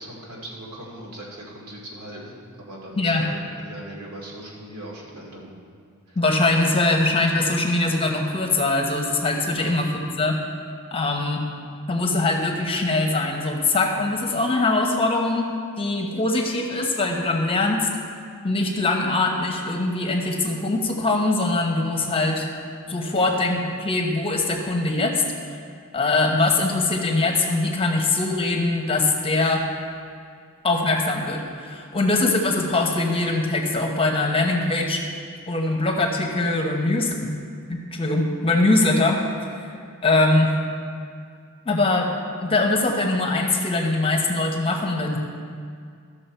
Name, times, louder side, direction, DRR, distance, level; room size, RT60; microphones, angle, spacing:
voice 1, 0.0-5.5 6.1-6.2 9.6-9.8 23.2-23.3, right 1 dB, 85° right, -4 dB, 2.4 m, -39 dB
voice 2, 3.0-3.3 6.2-10.4 10.9-11.5 11.9-17.9 18.4-22.5 22.9-25.2 25.9-29.7 30.6-35.0 35.5-37.3 37.7-39.7 40.0-40.6 41.6-42.1 42.4-45.2, left 2 dB, 25° left, 2 dB, 1.0 m, -22 dB
14.0 x 6.5 x 4.4 m, 2.2 s
head